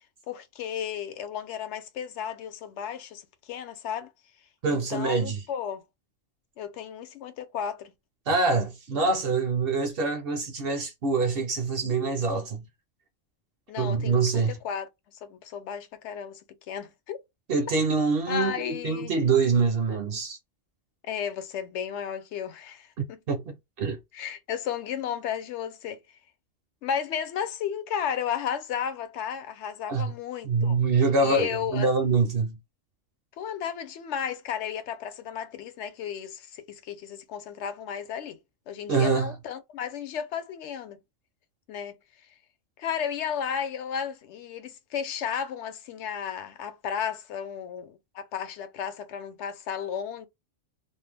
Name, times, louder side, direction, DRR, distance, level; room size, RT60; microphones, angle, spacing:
voice 1, 0.3-4.1 4.7-5.8 6.6-7.9 13.7-17.2 18.3-19.1 21.0-23.2 24.1-26.0 26.8-30.8 31.2-31.9 33.4-38.4 38.7-41.0 41.7-42.0 42.8-50.3, left 8 dB, 70° left, 0.8 m, -34 dB
voice 2, 4.6-5.4 8.3-12.6 13.8-14.6 17.5-20.4 23.0-24.0 29.9-30.1 30.4-32.6 38.9-39.3, right 4 dB, 60° right, 0.7 m, -25 dB
2.5 x 2.1 x 3.3 m
omnidirectional pair, 1.3 m